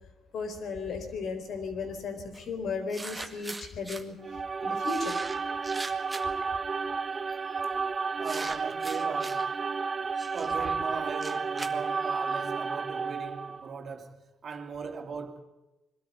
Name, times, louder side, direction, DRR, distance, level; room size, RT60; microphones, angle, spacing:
voice 1, 0.3-4.2 4.6-5.2, left 4 dB, 65° left, 4.3 m, -35 dB
sound 1, 2.3-2.4 2.9-4.0 4.8-6.4 7.3-7.6 8.2-9.4 10.2-12.4, right 2 dB, 10° right, 1.9 m, -41 dB
sound 2, 4.2-13.7, right 5 dB, 30° right, 0.6 m, -32 dB
voice 2, 8.2-9.5 10.3-15.4, right 5 dB, 50° right, 2.7 m, -39 dB
22.5 x 13.0 x 9.5 m
cardioid pair, 105°, 0 cm